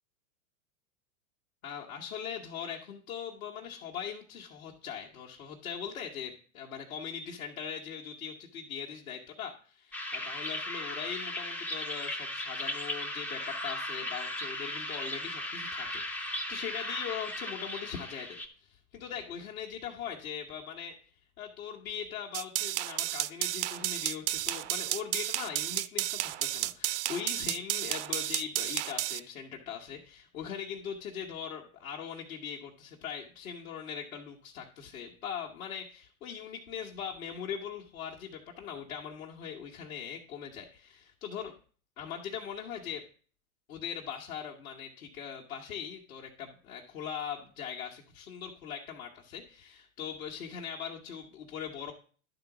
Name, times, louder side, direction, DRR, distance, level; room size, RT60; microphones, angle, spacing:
voice 1, 1.6-20.9 21.4-41.5 42.0-43.0 43.7-51.9, left 8 dB, 70° left, -3 dB, 1.4 m, -40 dB
sound 1, 9.9-18.5, left 1 dB, 5° left, 0.3 m, -37 dB
sound 2, 22.3-29.2, right 16 dB, 55° right, 0.5 m, -32 dB
11.5 x 4.0 x 5.9 m, 0.42 s
hypercardioid pair, 105°, 43 cm